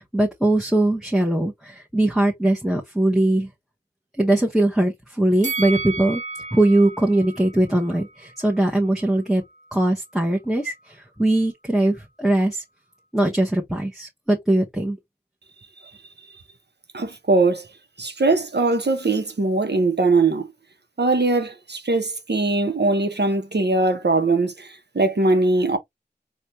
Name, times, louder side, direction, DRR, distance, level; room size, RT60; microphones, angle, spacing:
voice 1, 0.0-3.5 4.2-6.2 6.5-9.4 9.7-10.7 11.2-12.6 13.1-15.0, right 1 dB, ahead, 0.9 m, -21 dB
Bell, 5.4-8.6 9.0-9.1, right 4 dB, 40° right, 0.7 m, -33 dB
voice 2, 16.9-17.7 18.0-20.5 21.0-25.8, right 3 dB, 70° right, 0.8 m, -21 dB
4.1 x 2.3 x 3.0 m
wide cardioid pair, 40°, 18 cm